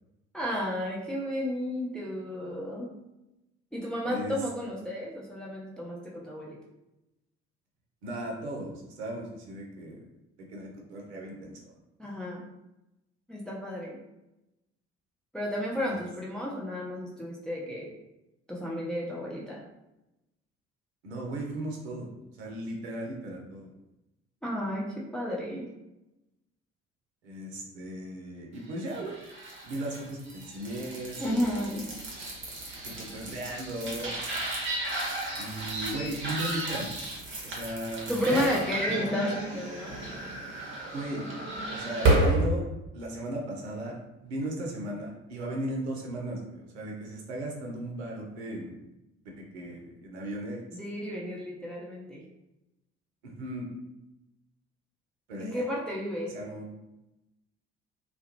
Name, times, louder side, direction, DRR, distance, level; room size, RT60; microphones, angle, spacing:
voice 1, 0.3-2.9 3.7-6.6 12.0-12.4 13.3-14.0 15.3-17.9 18.5-19.6 24.4-25.7 31.2-31.9 38.1-40.0 50.7-52.2 55.4-56.3, equal, ahead, -4 dB, 0.5 m, -32 dB
voice 2, 8.0-10.0 10.5-11.7 15.8-16.0 21.0-22.1 22.4-23.7 27.2-29.2 29.6-31.5 32.8-34.2 35.4-36.9 37.4-38.1 40.9-41.2 41.7-42.7 42.9-48.8 49.5-50.6 53.2-53.7 55.3-55.6 56.3-56.7, right 1 dB, 70° right, -1 dB, 0.6 m, -36 dB
sound 1, 28.8-42.5, right 2 dB, 35° right, 0.9 m, -32 dB
2.3 x 2.1 x 2.8 m, 0.93 s
figure-of-eight pair, 50°, 34 cm